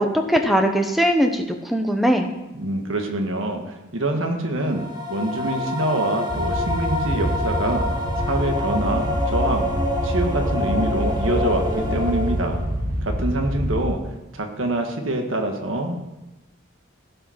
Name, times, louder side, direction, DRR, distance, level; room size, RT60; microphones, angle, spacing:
voice 1, 0.0-2.3, equal, ahead, 4 dB, 0.9 m, -20 dB
voice 2, 2.5-4.8 5.1-7.9 8.2-9.7 10.0-12.6 13.0-14.0 14.3-16.0, right 1 dB, 85° right, 4 dB, 1.5 m, -25 dB
sound 1, 4.6-12.8, left 2 dB, 20° right, 1.7 m, -27 dB
sound 2, 6.3-13.9, equal, 50° right, 1.3 m, -26 dB
16.0 x 5.6 x 5.8 m, 0.99 s
head